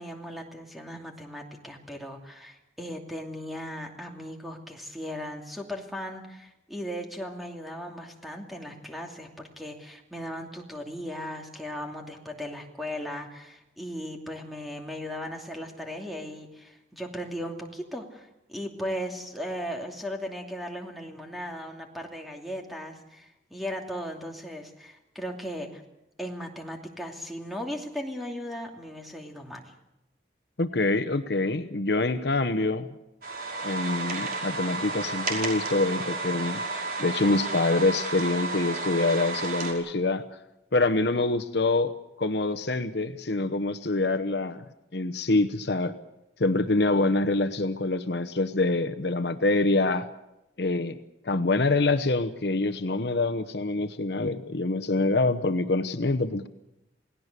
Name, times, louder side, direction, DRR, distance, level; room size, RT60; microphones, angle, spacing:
voice 1, 0.0-25.8 26.2-29.7, equal, ahead, 2 dB, 2.7 m, -37 dB
voice 2, 30.6-32.9 33.6-36.6 37.0-40.2 40.7-44.6 44.9-45.9 46.4-50.1 50.6-51.0 51.2-56.5, left 2 dB, 60° left, 10 dB, 1.0 m, -25 dB
sound 1, 33.2-39.7, right 3 dB, 50° right, 5.4 m, -32 dB
28.5 x 18.0 x 6.8 m, 0.90 s
head